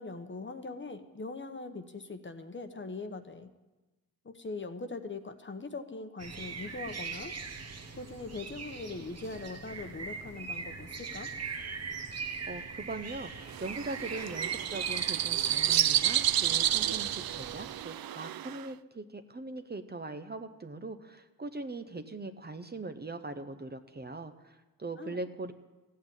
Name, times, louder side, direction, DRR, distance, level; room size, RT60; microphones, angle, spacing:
voice 1, 0.0-3.5 4.2-7.4 8.0-11.3 25.0-25.2, left 3 dB, 30° left, 8 dB, 0.9 m, -41 dB
sound 1, 6.2-17.8, right 5 dB, 45° right, 1.2 m, -41 dB
voice 2, 12.5-25.5, right 2 dB, 25° right, 8 dB, 0.7 m, -41 dB
sound 2, 13.5-18.7, right 11 dB, 70° right, 0.5 m, -30 dB
15.5 x 8.6 x 8.9 m, 1.1 s
wide cardioid pair, 150°, 36 cm